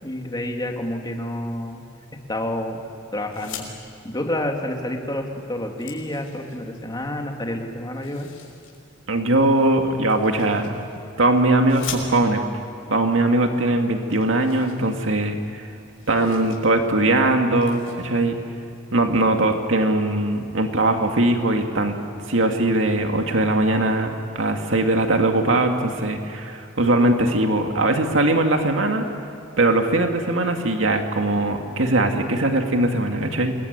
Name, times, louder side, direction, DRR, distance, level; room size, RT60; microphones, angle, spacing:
voice 1, 0.0-1.8 2.3-2.8 3.1-3.7 4.0-8.3, left 1 dB, 20° left, 2 dB, 2.8 m, -29 dB
sound 1, 3.3-3.7 5.0-5.1 5.4-6.8 7.9-8.8 10.1-11.0 11.6-12.5 13.4-13.5 13.7-13.8 14.1-15.4 15.7-16.6 16.9-17.1 17.5-18.0, left 8 dB, 90° left, 5.8 m, -40 dB
voice 2, 9.1-10.8 11.2-12.4 12.9-15.6 16.1-18.4 18.9-21.9 22.3-29.0 29.6-33.5, right 2 dB, 75° right, 4 dB, 2.3 m, -20 dB
27.5 x 22.0 x 9.6 m, 2.8 s
head